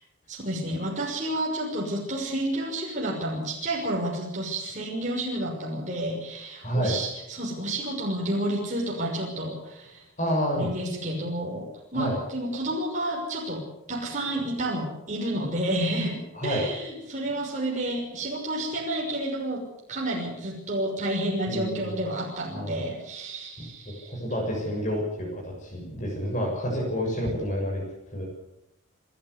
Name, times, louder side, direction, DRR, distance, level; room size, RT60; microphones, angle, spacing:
voice 1, 0.3-10.0 10.5-19.6 19.9-24.2, right 1 dB, 35° right, -2 dB, 6.1 m, -30 dB
voice 2, 6.6-7.0 10.2-10.7 11.9-12.2 16.3-16.6 21.5-21.9 22.5-22.9 23.9-28.3, equal, 40° left, -2 dB, 7.2 m, -29 dB
28.0 x 12.5 x 8.4 m, 0.88 s
head